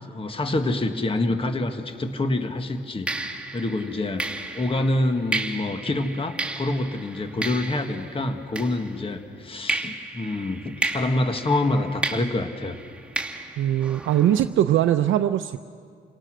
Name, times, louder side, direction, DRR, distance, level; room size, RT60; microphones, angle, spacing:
voice 1, 0.1-12.8, left 2 dB, 25° left, 6 dB, 1.6 m, -26 dB
sound 1, 1.9-2.1 3.1-9.2 9.7-14.4, right 2 dB, 5° right, 2.5 m, -33 dB
voice 2, 13.6-15.6, right 11 dB, 75° right, 7 dB, 0.7 m, -21 dB
29.0 x 18.5 x 6.3 m, 2.1 s
cardioid pair, 90°, 20 cm